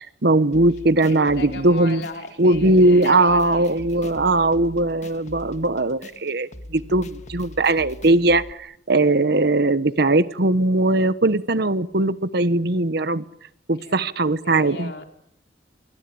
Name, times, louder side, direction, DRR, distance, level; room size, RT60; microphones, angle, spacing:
voice 1, 0.0-2.0 2.4-13.3 13.7-14.9, right 2 dB, 60° right, 15 dB, 1.2 m, -19 dB
sound 1, 0.5-8.5, left 1 dB, 40° left, 1.7 m, -42 dB
voice 2, 1.1-3.7 13.7-14.1 14.4-15.1, left 2 dB, 65° left, 5 dB, 4.0 m, -37 dB
28.5 x 24.0 x 8.7 m, 0.74 s
head